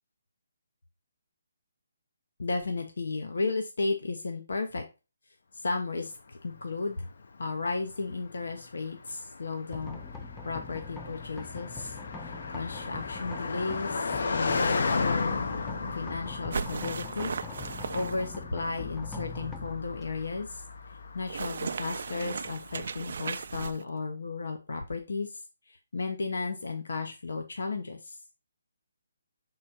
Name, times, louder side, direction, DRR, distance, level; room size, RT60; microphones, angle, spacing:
voice 1, 2.4-4.8 5.5-7.1 7.4-10.0 10.4-15.4 15.9-17.3 17.6-20.6 21.1-28.2, left 3 dB, 80° left, 5 dB, 1.1 m, -34 dB
Car passing by, 6.5-22.9, left 4 dB, 60° left, 0.7 m, -35 dB
sound 1, 9.7-23.6, left 4 dB, 5° left, 0.4 m, -43 dB
sound 2, 16.5-18.4 21.3-23.8, right 5 dB, 55° right, 0.4 m, -36 dB
6.4 x 4.3 x 4.3 m, 0.29 s
hypercardioid pair, 170°, 0 cm